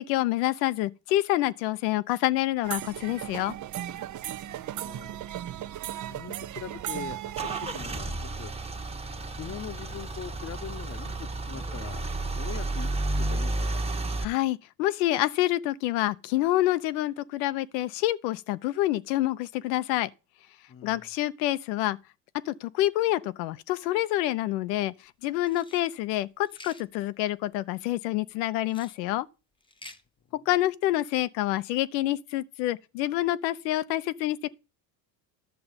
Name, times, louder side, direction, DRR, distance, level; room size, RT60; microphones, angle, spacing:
voice 1, 0.0-3.5 14.2-20.1 20.8-22.0 22.5-24.9 25.2-29.3 30.3-34.5, left 15 dB, 80° left, 0.9 m, -27 dB
sound 1, 2.6-7.8, right 12 dB, 40° right, 0.6 m, -36 dB
voice 2, 4.7-5.1 6.1-8.5 9.4-12.1 12.4-13.9 20.7-21.1 30.3-30.4, left 8 dB, 30° left, 1.0 m, -42 dB
Car / Engine starting / Idling, 6.8-14.2, right 2 dB, 10° right, 1.2 m, -32 dB
sound 2, 25.4-25.9 26.4-26.8 28.6-29.0 29.6-30.0, left 2 dB, 10° left, 1.1 m, -48 dB
11.5 x 6.9 x 5.2 m
hypercardioid pair, 80°, 50 cm